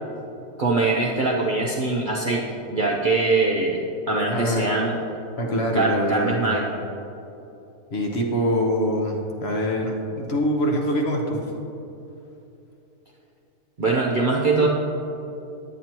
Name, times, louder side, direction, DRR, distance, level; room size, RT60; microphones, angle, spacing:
voice 1, 0.6-3.8 4.1-5.0 5.7-6.7 13.8-14.7, right 3 dB, 50° right, -3 dB, 0.6 m, -22 dB
voice 2, 4.3-4.6 5.4-6.4 7.9-11.4, equal, 50° left, 0 dB, 1.0 m, -24 dB
9.1 x 9.1 x 2.9 m, 2.9 s
omnidirectional pair, 1.5 m